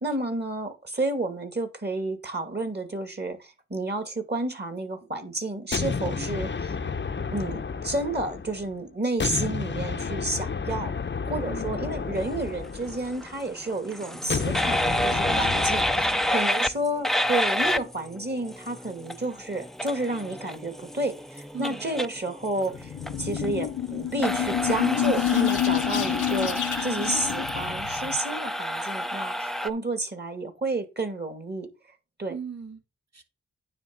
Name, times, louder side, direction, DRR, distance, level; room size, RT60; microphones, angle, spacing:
voice 1, 0.0-6.5 7.3-10.9 11.3-31.7 32.2-32.4, right 2 dB, 35° right, 2.4 m, -31 dB
sound 1, 5.7-8.7 9.2-13.4 14.3-16.4, left 5 dB, 35° left, 0.8 m, -31 dB
voice 2, 11.4-11.9 15.3-16.7 21.5-21.8 25.9-26.3 32.3-32.8 33.1-33.2, right 5 dB, 55° right, 2.3 m, -40 dB
sound 2, 12.7-29.7, equal, ahead, 0.6 m, -29 dB
sound 3, 22.7-28.2, left 11 dB, 70° left, 0.8 m, -28 dB
9.6 x 3.5 x 7.1 m
cardioid pair, 55°, 31 cm